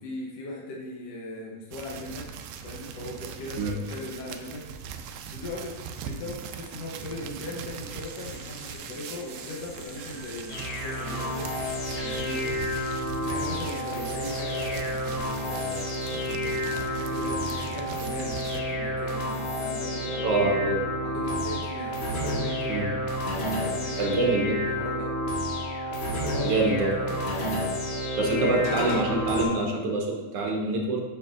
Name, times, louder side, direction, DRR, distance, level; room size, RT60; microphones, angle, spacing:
voice 1, 0.0-2.3 2.6-5.8 6.0-12.5 13.2-15.9 16.3-20.5 21.0-22.0 22.3-25.1 26.3-27.3 28.3-29.1, left 2 dB, 65° left, -2 dB, 1.9 m, -39 dB
sound 1, 1.7-18.6, right 7 dB, 85° right, 1.9 m, -41 dB
sound 2, 8.0-13.0, equal, 30° left, 1.8 m, -46 dB
sound 3, 10.5-29.4, equal, 85° left, 2.8 m, -30 dB
voice 2, 20.2-20.8 22.7-22.9 24.0-24.6 26.4-26.9 28.2-31.0, right 2 dB, 65° right, 0 dB, 1.6 m, -25 dB
9.0 x 6.5 x 2.5 m, 1.4 s
omnidirectional pair, 3.4 m